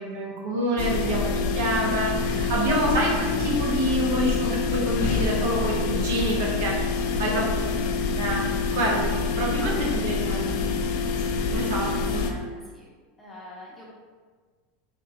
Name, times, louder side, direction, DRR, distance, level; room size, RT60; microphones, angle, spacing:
voice 1, 0.0-6.8 7.2-7.6 8.2-8.5 8.7-10.5 11.5-12.2, right 1 dB, 85° right, -1 dB, 0.7 m, -27 dB
sound 1, 0.8-12.3, left 4 dB, 65° left, 0.3 m, -26 dB
voice 2, 9.6-10.7 11.9-12.9 13.2-13.9, left 1 dB, 10° left, -5 dB, 0.6 m, -45 dB
3.6 x 2.2 x 2.8 m, 1.5 s
supercardioid pair, 135°, 0 cm